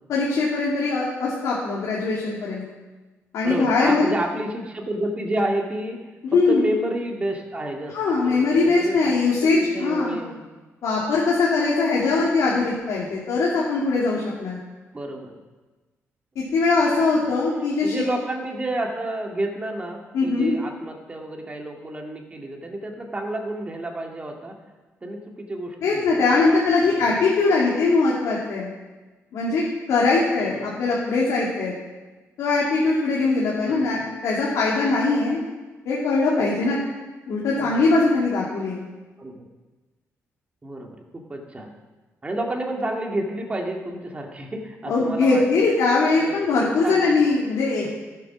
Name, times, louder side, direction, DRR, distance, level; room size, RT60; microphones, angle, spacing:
voice 1, 0.1-2.6 3.3-4.0 6.2-6.7 7.9-10.2 10.8-14.6 16.4-17.9 20.1-20.5 25.8-28.7 29.3-29.6 29.9-31.7 32.4-35.4 35.8-36.8 37.3-38.8 44.9-47.9, left 3 dB, 85° left, -5 dB, 2.5 m, -21 dB
voice 2, 3.4-6.0 6.3-8.0 8.2-9.2 9.4-10.5 14.9-15.4 17.2-17.3 17.8-24.6 25.0-26.5 26.8-26.9 30.4-30.8 33.7-34.0 37.5-38.0 39.2-39.5 40.6-41.7 42.2-45.7 46.2-47.2 47.8-47.9, right 1 dB, 25° right, 1 dB, 2.1 m, -30 dB
14.0 x 7.6 x 6.2 m, 1.2 s
cardioid pair, 105°, 5 cm